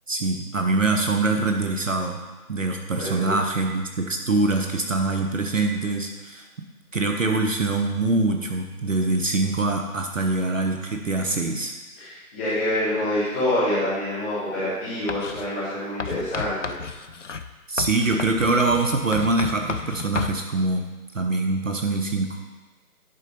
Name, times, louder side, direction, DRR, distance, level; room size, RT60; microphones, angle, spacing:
voice 1, 0.1-2.2 2.5-6.4 6.9-11.7 17.7-20.9 21.1-22.4, right 3 dB, 55° right, 3 dB, 1.0 m, -24 dB
voice 2, 3.0-3.3 12.0-16.6, left 1 dB, 10° left, -14 dB, 1.6 m, -26 dB
Writing, 15.1-15.5 16.0-20.4, left 5 dB, 55° left, 0.5 m, -32 dB
10.5 x 3.8 x 5.2 m, 1.2 s
figure-of-eight pair, 160°, 45 cm